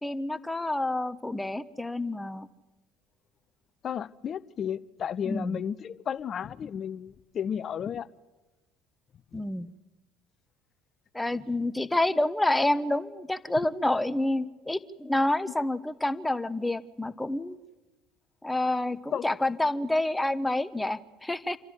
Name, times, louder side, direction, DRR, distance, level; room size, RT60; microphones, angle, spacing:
voice 1, 0.0-2.5 5.2-5.6 9.3-9.7 11.1-17.6 18.4-21.6, left 1 dB, 10° left, 1.1 m, -28 dB
voice 2, 3.8-8.1 19.1-19.3, left 8 dB, 45° left, 0.8 m, -33 dB
27.5 x 12.5 x 9.7 m
hypercardioid pair, 70°, 0 cm